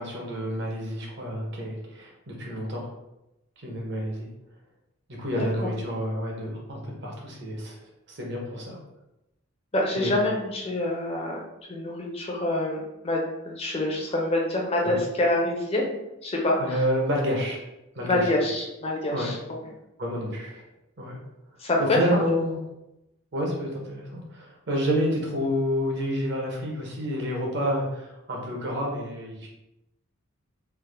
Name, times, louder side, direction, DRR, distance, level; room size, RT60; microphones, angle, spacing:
voice 1, 0.0-2.9 3.6-4.3 5.2-7.8 8.1-8.8 10.0-10.2 14.8-15.0 16.6-17.6 17.9-18.3 19.1-19.4 20.0-20.6 21.0-21.2 21.8-22.6 23.3-29.5, equal, 50° right, -1 dB, 0.8 m, -29 dB
voice 2, 5.4-5.7 9.7-11.4 11.7-12.8 13.0-13.2 13.5-16.8 18.0-19.4 21.6-22.0, left 1 dB, 30° left, -1 dB, 0.4 m, -26 dB
3.4 x 2.0 x 3.2 m, 0.91 s
head